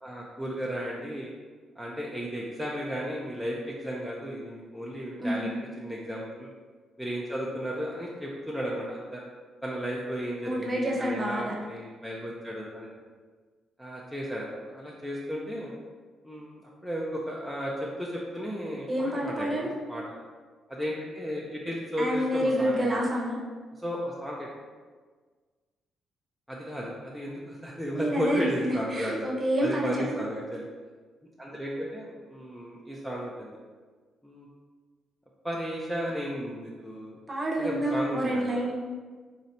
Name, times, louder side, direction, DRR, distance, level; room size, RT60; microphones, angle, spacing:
voice 1, 0.0-1.3 1.8-6.5 7.0-9.2 9.6-12.9 13.8-15.7 16.2-20.0 20.7-23.0 23.8-24.5 26.5-29.3 29.6-30.7 31.4-33.6 34.2-34.5 35.4-37.2 37.6-38.6, equal, ahead, -4 dB, 0.5 m, -34 dB
voice 2, 10.4-11.5 18.9-19.7 22.0-23.4 27.9-29.9 37.3-38.7, equal, 20° right, -3 dB, 0.9 m, -28 dB
3.2 x 2.6 x 4.1 m, 1.5 s
cardioid pair, 90°, 0 cm